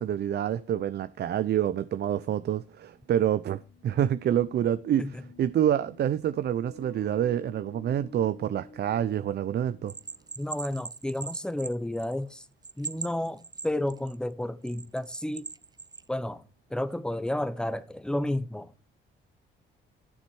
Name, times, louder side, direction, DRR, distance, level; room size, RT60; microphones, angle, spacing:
voice 1, 0.0-9.9, right 10 dB, 55° right, 0.6 m, -27 dB
sound 1, 3.5-10.3, left 2 dB, 90° left, 2.1 m, -51 dB
Bell, 9.9-12.3 12.6-14.2 14.7-16.0, right 4 dB, 20° right, 0.6 m, -39 dB
voice 2, 10.4-12.4 12.8-15.5 16.1-16.4 16.7-18.7, left 1 dB, 5° left, 0.9 m, -31 dB
11.5 x 7.2 x 4.6 m
cardioid pair, 90°, 20 cm